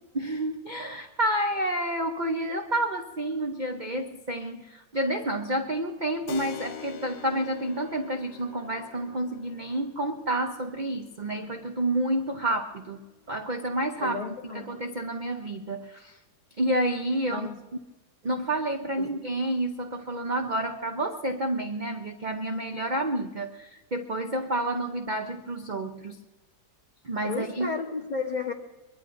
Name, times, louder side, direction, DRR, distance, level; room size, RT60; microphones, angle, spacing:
voice 1, 0.1-13.0 13.3-14.2 14.7-16.2 16.6-17.5 18.2-26.2 27.0-27.7, right 1 dB, 45° right, 5 dB, 0.6 m, -29 dB
Keyboard (musical), 6.3-14.5, left 7 dB, 75° left, 1.3 m, -46 dB
voice 2, 14.0-14.7 17.3-17.6 19.0-19.1 27.2-28.5, left 3 dB, 30° left, 1 dB, 1.3 m, -33 dB
23.0 x 22.0 x 2.6 m, 1.2 s
omnidirectional pair, 1.8 m